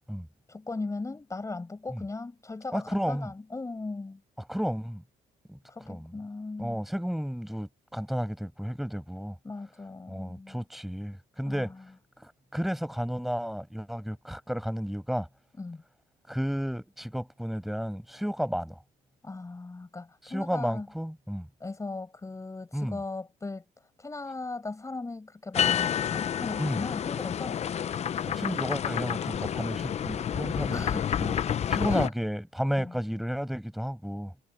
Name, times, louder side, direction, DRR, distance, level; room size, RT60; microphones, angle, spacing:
voice 1, 0.5-4.2 5.7-6.8 9.4-10.6 11.5-11.8 15.6-15.8 19.2-20.9 21.6-23.6 24.0-27.7 30.7-31.2 31.9-32.1 32.7-33.0, left 3 dB, 20° left, 5.5 m, -38 dB
voice 2, 2.7-3.3 4.5-5.0 5.5-5.6 5.9-6.1 6.6-9.4 10.1-11.7 12.2-15.3 16.3-18.8 20.2-21.5 22.7-23.0 26.6-26.8 28.3-30.9 31.2-31.4 31.7-34.3, equal, ahead, 6.3 m, -32 dB
sound 1, 25.5-32.1, left 9 dB, 40° left, 0.7 m, -29 dB
cardioid pair, 110°, 17 cm